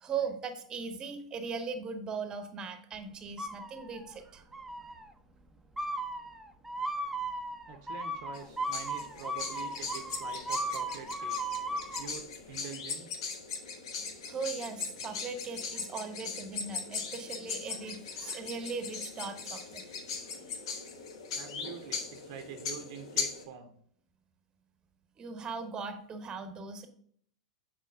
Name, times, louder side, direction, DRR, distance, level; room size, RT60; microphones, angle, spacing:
voice 1, 0.0-4.4 14.3-19.8 20.3-20.8 25.2-26.9, right 5 dB, 25° right, 8 dB, 0.9 m, -39 dB
sound 1, 3.4-4.1 4.5-5.1 5.8-12.1, right 1 dB, 5° right, 0.6 m, -36 dB
voice 2, 7.7-11.4 12.0-13.2 21.3-23.7, right 8 dB, 50° right, 6 dB, 0.7 m, -46 dB
sound 2, 8.3-23.4, left 5 dB, 60° left, 1.1 m, -39 dB
7.6 x 4.3 x 3.5 m, 0.63 s
figure-of-eight pair, 95°, 3 cm